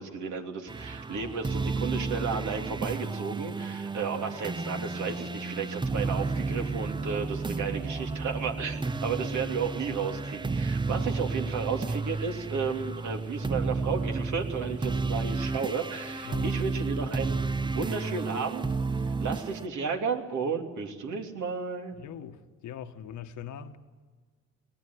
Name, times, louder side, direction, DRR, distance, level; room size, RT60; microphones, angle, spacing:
voice 1, 0.0-18.7 19.2-22.0, right 5 dB, 70° right, 3 dB, 3.0 m, -33 dB
sound 1, 0.7-19.7, right 3 dB, 15° right, 0.6 m, -32 dB
voice 2, 10.9-11.5 16.2-16.9 21.9-23.8, left 9 dB, 75° left, 8 dB, 1.4 m, -42 dB
20.0 x 18.5 x 9.5 m, 1.4 s
cardioid pair, 90°, 30 cm